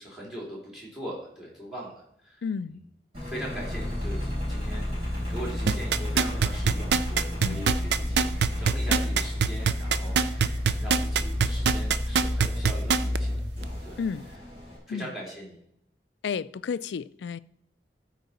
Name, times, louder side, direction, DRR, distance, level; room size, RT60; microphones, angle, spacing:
voice 1, 0.0-2.8 3.2-13.4 13.8-14.0 14.9-15.6, equal, ahead, 3.1 m, -41 dB
voice 2, 2.4-2.8 7.4-7.7 14.0-14.3 14.9-15.1 16.2-17.4, left 6 dB, 80° left, 0.3 m, -32 dB
Engine, 3.1-14.8, left 1 dB, 30° right, 4.0 m, -31 dB
sound 1, 5.7-13.2 13.6-13.7, right 6 dB, 75° right, 0.5 m, -23 dB
13.0 x 4.6 x 4.2 m
head